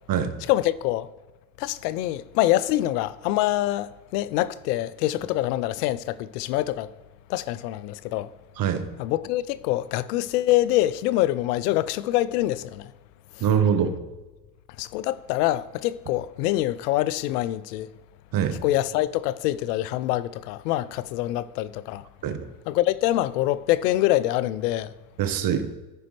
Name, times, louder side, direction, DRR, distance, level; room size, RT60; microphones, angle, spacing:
voice 1, 0.5-1.1 1.6-6.9 7.3-8.3 9.0-12.9 14.8-17.9 18.6-22.0 22.7-24.9, left 15 dB, 85° left, 0.6 m, -25 dB
voice 2, 13.4-14.0 18.3-18.6 22.2-22.4 25.2-25.7, right 8 dB, 50° right, 1.1 m, -23 dB
14.5 x 5.1 x 3.2 m
supercardioid pair, 90°, 46 cm